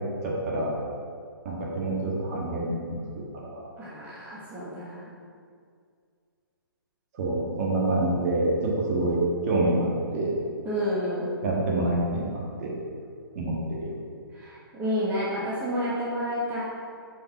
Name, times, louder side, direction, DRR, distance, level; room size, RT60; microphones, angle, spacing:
voice 1, 0.2-0.7 1.4-3.6 7.1-9.2 9.4-10.3 11.4-12.7 13.3-13.9, right 2 dB, 40° right, -4 dB, 1.7 m, -27 dB
voice 2, 3.8-5.1 10.6-11.3 14.3-16.6, equal, 15° right, -8 dB, 1.3 m, -30 dB
6.4 x 5.0 x 4.5 m, 2.2 s
figure-of-eight pair, 135°, 12 cm